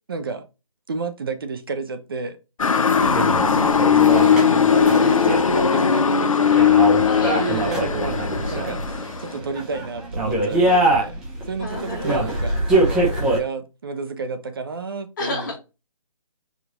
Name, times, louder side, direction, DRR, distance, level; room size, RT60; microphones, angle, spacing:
voice 1, 0.1-0.5 0.9-2.4 3.0-3.3 3.9-6.7 7.4-12.9 13.3-15.6, right 4 dB, 40° right, 0.6 m, -31 dB
Motor vehicle (road) / Siren, 2.6-9.4, left 7 dB, 70° left, 0.5 m, -18 dB
sound 1, 3.0-13.4, right 2 dB, 5° right, 0.5 m, -24 dB
voice 2, 5.0-5.3 6.5-6.7 7.1-7.8 10.7-10.9 11.6-12.3 15.2-15.6, left 2 dB, 35° left, 1.6 m, -31 dB
5.0 x 2.5 x 3.9 m
figure-of-eight pair, 150°, 18 cm